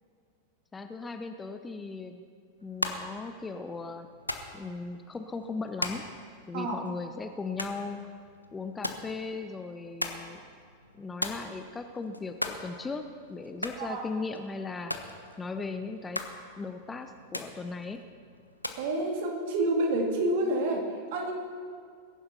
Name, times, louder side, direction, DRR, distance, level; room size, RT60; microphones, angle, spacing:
voice 1, 0.7-2.2 2.6-4.1 4.5-6.1 6.5-8.0 8.5-10.5 10.9-13.0 13.3-14.9 15.4-16.2 16.6-18.0, left 4 dB, 15° left, 7 dB, 0.7 m, -37 dB
sound 1, 2.6-18.9, left 1 dB, 85° left, 0.9 m, -40 dB
voice 2, 18.8-20.8 21.1-21.3, right 1 dB, 50° right, 2 dB, 2.4 m, -28 dB
21.0 x 11.0 x 4.1 m, 2.2 s
figure-of-eight pair, 90°, 0 cm